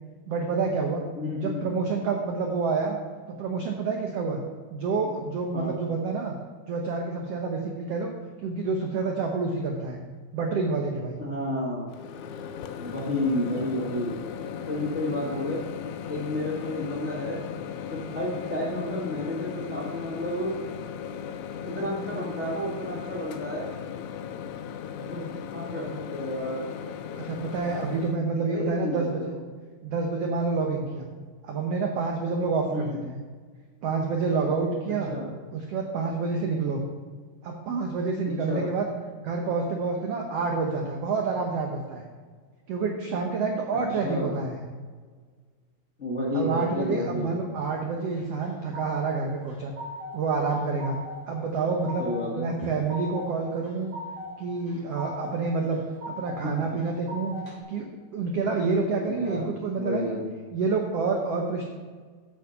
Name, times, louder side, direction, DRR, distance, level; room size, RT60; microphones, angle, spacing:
voice 1, 0.3-1.0 1.4-3.0 3.3-4.4 4.7-6.3 6.7-8.1 8.4-10.0 10.3-11.2 27.2-29.3 29.8-31.1 31.4-33.1 33.8-35.1 35.5-36.8 37.4-38.8 39.2-42.1 42.7-44.6 46.3-49.7 50.1-51.0 51.3-52.1 52.4-54.0 54.4-55.8 56.1-57.4 57.7-57.9 58.1-60.2 60.5-61.6, right 4 dB, 85° right, 2 dB, 1.3 m, -28 dB
voice 2, 1.1-1.7 5.5-5.7 11.2-11.9 12.8-14.2 14.7-15.6 16.1-17.4 17.9-20.6 21.6-23.7 25.0-26.7 28.5-29.4 32.6-33.0 35.1-35.3 38.5-38.6 44.0-44.3 46.0-47.3 52.0-52.5 56.4-56.5 59.1-59.5 59.8-60.3, left 1 dB, 35° left, -6 dB, 1.2 m, -31 dB
Microwave oven, 11.9-28.2, left 8 dB, 85° left, 1.7 m, -37 dB
sound 1, 48.1-49.1 49.5-50.2 50.5-51.2 51.5-52.2 52.6-53.3 53.6-54.3 54.7-55.3 55.7-56.4 56.8-57.5, left 2 dB, 30° right, 3.2 m, -39 dB
8.3 x 6.5 x 5.6 m, 1.5 s
omnidirectional pair, 4.1 m